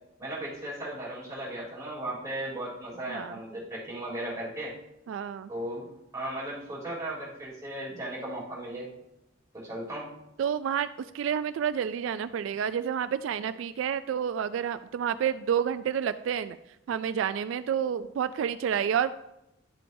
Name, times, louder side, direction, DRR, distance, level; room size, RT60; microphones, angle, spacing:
voice 1, 0.2-4.7 5.5-8.9 9.5-10.1, right 1 dB, 15° right, -6 dB, 3.0 m, -36 dB
voice 2, 3.1-3.4 5.1-5.5 10.4-10.9 11.1-16.6 16.9-19.1, right 8 dB, 85° right, 13 dB, 0.3 m, -29 dB
11.0 x 7.6 x 2.6 m, 0.86 s
head